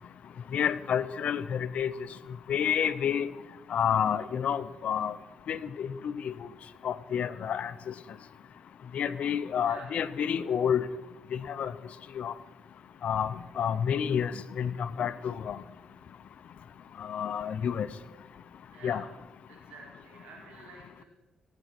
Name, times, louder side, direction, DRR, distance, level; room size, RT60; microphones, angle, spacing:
voice 1, 0.5-1.9 2.5-3.3 3.7-5.1 5.5-6.3 6.8-7.9 8.9-10.9 11.3-11.7 12.2-12.3 13.0-15.6 17.0-17.9 18.8-19.0, left 8 dB, 70° left, 15 dB, 0.7 m, -29 dB
voice 2, 18.7-19.2 19.5-21.1, right 4 dB, 90° right, -1 dB, 4.4 m, -50 dB
18.0 x 8.3 x 6.0 m, 1.1 s
cardioid pair, 75°, 2 cm